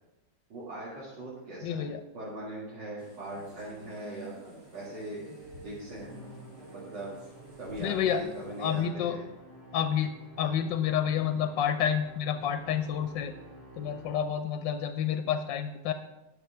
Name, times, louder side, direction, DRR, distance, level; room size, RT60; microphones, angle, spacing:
voice 1, 0.5-4.3 4.7-5.2 5.6-6.1 6.7-7.1 7.6-9.2 10.4-10.5, right 1 dB, 75° right, -8 dB, 2.8 m, -40 dB
voice 2, 1.6-2.0 7.8-8.2 8.6-9.2 9.7-10.1 10.4-13.3 13.8-15.9, left 8 dB, 80° left, 8 dB, 1.3 m, -29 dB
sound 1, 3.0-8.8, right 2 dB, 35° right, 3.1 m, -50 dB
Musical instrument, 6.0-14.5, right 1 dB, 10° right, 3.7 m, -51 dB
11.0 x 6.6 x 5.7 m, 1.0 s
omnidirectional pair, 2.0 m